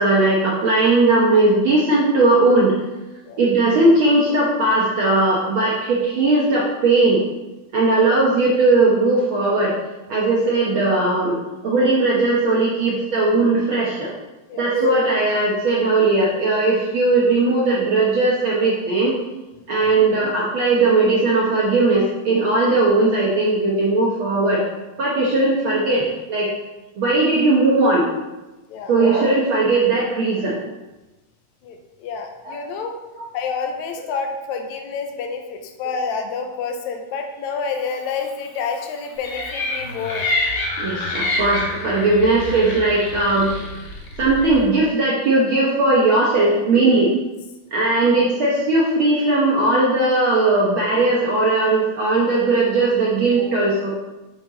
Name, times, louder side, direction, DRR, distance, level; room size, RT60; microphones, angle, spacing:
voice 1, 0.0-2.7 3.4-7.2 7.7-9.7 10.1-11.4 11.6-14.1 14.6-19.2 19.7-24.6 25.0-26.0 26.3-26.5 27.0-28.1 28.9-30.6 32.4-32.6 40.8-43.6 44.2-47.1 47.7-53.9, right 2 dB, 65° right, -5 dB, 1.3 m, -18 dB
voice 2, 31.6-33.0 33.3-40.5, left 5 dB, 80° left, 4 dB, 1.9 m, -28 dB
sound 1, 39.2-44.7, left 2 dB, 65° left, 1.0 m, -27 dB
7.3 x 4.5 x 3.9 m, 1.1 s
omnidirectional pair, 3.4 m